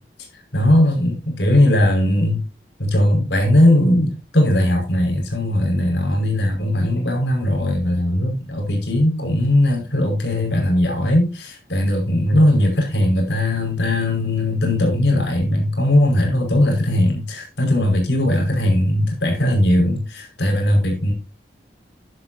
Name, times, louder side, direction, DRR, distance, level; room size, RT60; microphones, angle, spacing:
voice 1, 0.5-2.4 2.8-21.1, left 1 dB, 85° left, 3 dB, 5.3 m, -18 dB
11.5 x 11.0 x 2.8 m, 0.28 s
head